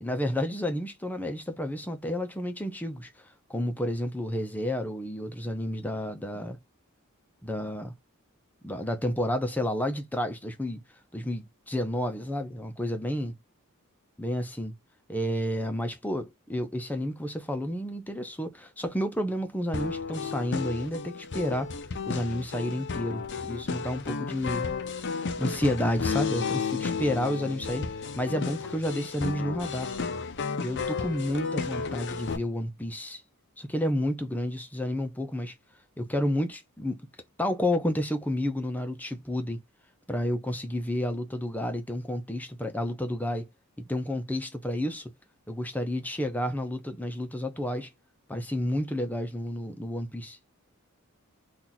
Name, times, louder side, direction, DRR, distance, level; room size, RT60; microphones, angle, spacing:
voice 1, 0.0-3.1 3.5-6.6 7.4-7.9 8.6-10.8 11.1-13.4 14.2-14.7 15.1-21.7 22.1-24.7 25.4-27.9 28.2-29.9 30.6-33.2 33.6-35.5 36.0-37.0 37.4-39.6 40.1-43.5 43.8-45.1 45.5-47.9 48.3-50.4, left 1 dB, 10° left, 0.6 m, -30 dB
sound 1, 19.7-32.4, left 5 dB, 55° left, 0.6 m, -33 dB
2.9 x 2.5 x 3.9 m
head